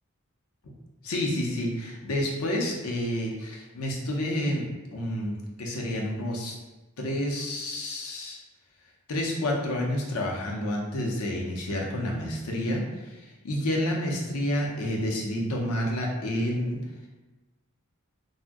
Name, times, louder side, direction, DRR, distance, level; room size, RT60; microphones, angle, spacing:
voice 1, 1.0-4.7 4.9-6.5 7.0-8.4 9.1-16.8, left 1 dB, 85° left, -1 dB, 0.6 m, -29 dB
2.5 x 2.1 x 3.5 m, 1.2 s
head